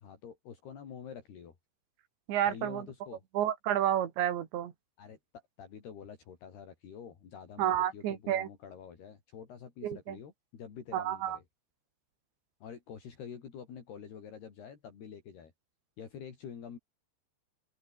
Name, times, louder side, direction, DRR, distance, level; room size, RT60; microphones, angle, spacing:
voice 1, 0.0-1.6 2.4-3.2 5.0-5.2 5.6-11.4 12.6-15.5 16.0-16.8, left 7 dB, 60° left, 5.5 m, -47 dB
voice 2, 2.3-2.8 3.4-4.7 7.6-8.5 9.8-10.2 10.9-11.4, right 11 dB, 75° right, 4.5 m, -30 dB
omnidirectional pair, 5.3 m